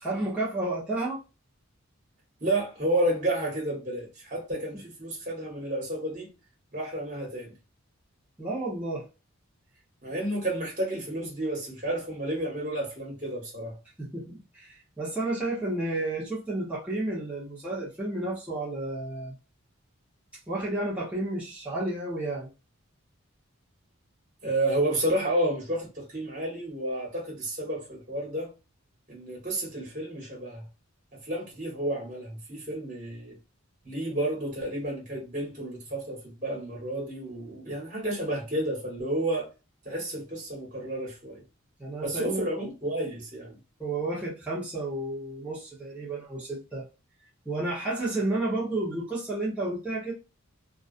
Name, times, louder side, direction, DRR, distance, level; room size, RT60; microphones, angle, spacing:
voice 1, 0.0-1.2 8.4-9.1 14.0-19.3 20.5-22.5 41.8-42.5 43.8-46.9 47.5-50.1, right 2 dB, 5° right, 0.8 m, -31 dB
voice 2, 2.4-6.3 6.7-7.5 10.0-13.8 24.4-28.5 29.1-30.7 31.1-33.4 33.8-39.5 39.8-41.4 42.0-43.6, right 1 dB, 35° right, 1.3 m, -31 dB
2.4 x 2.3 x 2.4 m
head